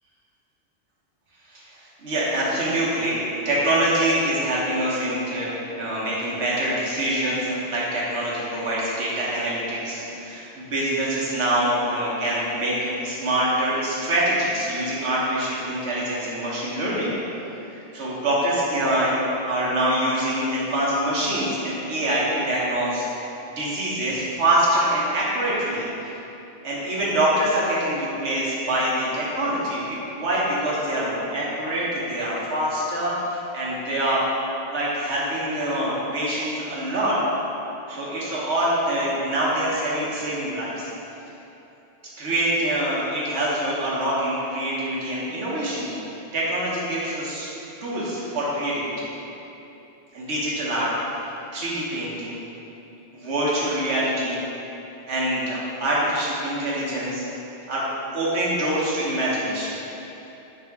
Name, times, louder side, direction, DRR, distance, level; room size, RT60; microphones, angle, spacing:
voice 1, 2.0-17.1 17.7-23.0 23.6-25.8 26.6-34.2 34.7-37.2 37.9-40.9 42.2-45.9 46.3-47.5 47.8-49.1 50.1-50.9 51.5-52.4 53.1-54.4 55.1-57.2 57.7-57.9 58.1-59.8, right 1 dB, 80° right, -7 dB, 1.2 m, -25 dB
3.6 x 2.6 x 4.5 m, 2.9 s
omnidirectional pair, 1.1 m